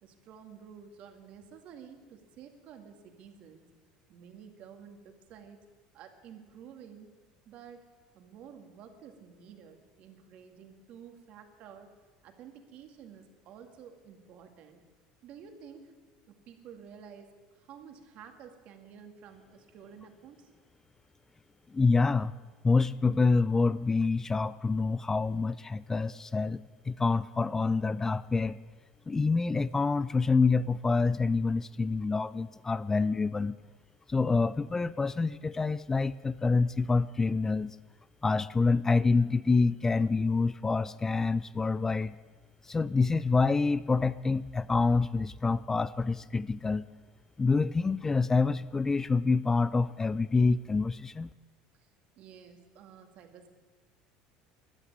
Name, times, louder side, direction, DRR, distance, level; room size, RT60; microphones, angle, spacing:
voice 1, 0.0-3.6 4.1-5.6 5.9-7.1 7.5-7.9 8.1-11.9 12.2-14.8 15.2-15.9 16.3-20.5 51.8-51.9 52.2-53.5, right 7 dB, 60° right, 5 dB, 2.2 m, -51 dB
voice 2, 21.7-22.3 22.6-28.6 29.1-33.6 34.1-37.8 38.2-42.1 42.6-46.9 47.4-51.3, left 4 dB, 20° left, 17 dB, 0.4 m, -27 dB
13.0 x 10.0 x 9.5 m, 1.4 s
supercardioid pair, 105°, 3 cm